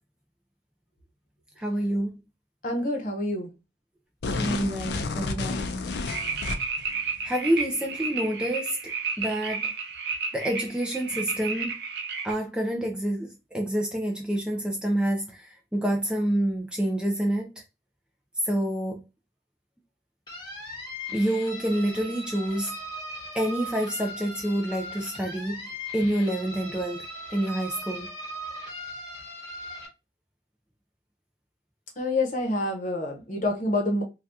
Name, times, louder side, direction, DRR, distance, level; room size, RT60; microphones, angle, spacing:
voice 1, 1.6-2.2 4.4-5.7 7.2-8.9 9.2-9.7 10.3-11.8 12.2-17.6 18.4-19.0 21.1-22.8 23.3-28.1, right 1 dB, 5° right, 0.3 m, -28 dB
voice 2, 2.6-3.5 32.0-34.0, left 2 dB, 45° left, 0.8 m, -27 dB
sound 1, 4.2-6.9, left 3 dB, 65° left, 0.4 m, -30 dB
sound 2, 6.1-12.3, right 5 dB, 60° right, 0.6 m, -32 dB
sound 3, 20.3-29.9, equal, 20° left, 1.0 m, -39 dB
2.7 x 2.3 x 3.4 m
head